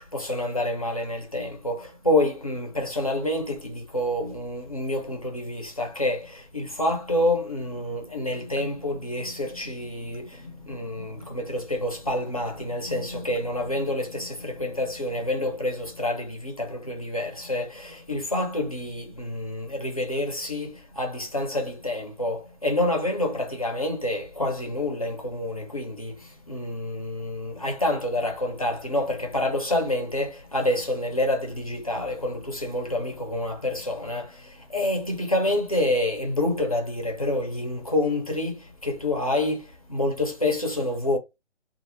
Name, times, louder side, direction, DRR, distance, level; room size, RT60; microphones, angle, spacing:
voice 1, 0.0-26.2 26.5-34.3 34.7-39.6 39.9-41.2, left 1 dB, 30° left, 0.4 m, -28 dB
2.2 x 2.0 x 3.2 m
figure-of-eight pair, 160°, 36 cm